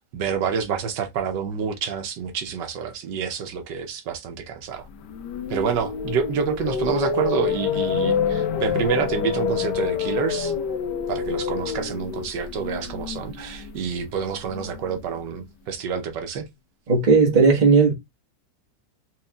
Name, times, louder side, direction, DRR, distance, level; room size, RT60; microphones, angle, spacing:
voice 1, 0.1-4.9 5.5-10.5 11.1-16.5, right 6 dB, 80° right, 1.3 m, -28 dB
sound 1, 4.9-15.0, left 7 dB, 75° left, 1.2 m, -27 dB
voice 2, 16.9-17.9, right 4 dB, 30° right, 1.1 m, -16 dB
4.4 x 3.2 x 2.3 m
omnidirectional pair, 1.9 m